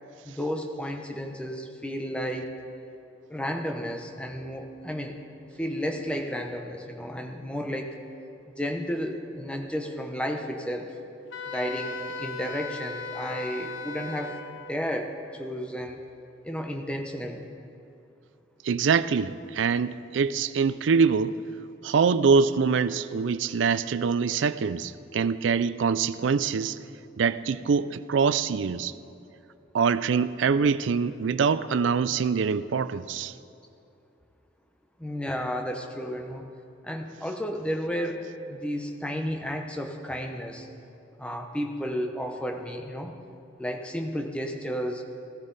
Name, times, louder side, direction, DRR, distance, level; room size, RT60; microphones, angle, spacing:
voice 1, 0.2-2.6 3.3-5.2 5.6-8.0 8.6-10.9 11.5-16.0 16.4-17.5 35.0-36.4 36.8-40.7 41.2-43.1 43.6-45.0, equal, 5° left, 3 dB, 0.8 m, -32 dB
Wind instrument woodwind instrument, 11.3-14.8, left 4 dB, 75° left, 0.6 m, -37 dB
voice 2, 18.6-21.4 21.8-26.8 27.2-28.9 29.7-33.3, right 5 dB, 75° right, 15 dB, 0.4 m, -24 dB
16.0 x 14.0 x 4.0 m, 2.6 s
head